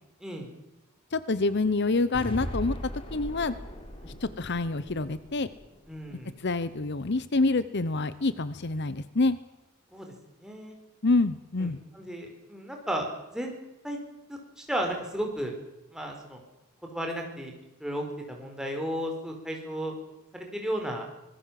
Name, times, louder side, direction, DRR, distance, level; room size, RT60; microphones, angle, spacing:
voice 1, 1.1-3.5 4.2-5.5 6.4-9.4 11.0-11.8, left 3 dB, 50° left, 14 dB, 0.8 m, -27 dB
sound 1, 2.1-6.3, equal, 25° left, 3.5 m, -39 dB
voice 2, 5.9-6.3 9.9-10.1 10.4-10.8 11.6-13.5 13.8-14.0 14.3-15.5 15.9-16.4 16.9-17.5 17.8-19.9 20.3-21.1, equal, 5° right, 1 dB, 4.6 m, -34 dB
25.5 x 20.5 x 7.6 m, 0.95 s
head